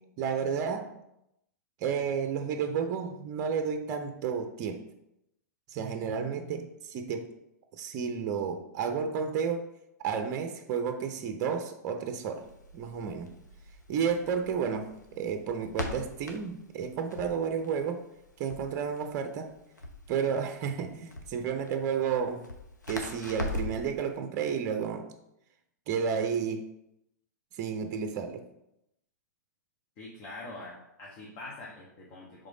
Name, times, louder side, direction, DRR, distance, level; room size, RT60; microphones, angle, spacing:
voice 1, 0.2-0.9 1.8-4.8 5.7-7.3 7.7-9.7 10.0-12.4 12.7-13.3 13.9-14.9 15.2-18.0 18.4-19.5 20.1-22.4 22.9-25.0 25.9-26.6 27.5-28.4, right 6 dB, 30° right, 7 dB, 0.6 m, -31 dB
Crackle, 12.3-23.9, left 2 dB, 75° left, 1.1 m, -41 dB
voice 2, 30.0-32.5, left 2 dB, 35° left, -4 dB, 1.2 m, -44 dB
4.9 x 3.8 x 5.0 m, 0.83 s
figure-of-eight pair, 105°, 10 cm